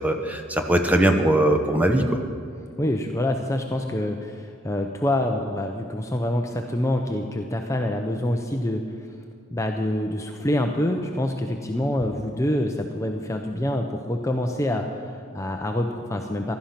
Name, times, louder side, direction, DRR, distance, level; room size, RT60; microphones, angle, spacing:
voice 1, 0.0-2.2, right 1 dB, 5° right, 5 dB, 0.9 m, -20 dB
voice 2, 2.8-8.8 9.5-16.5, left 1 dB, 15° left, 3 dB, 0.6 m, -26 dB
16.0 x 12.0 x 5.8 m, 2.2 s
head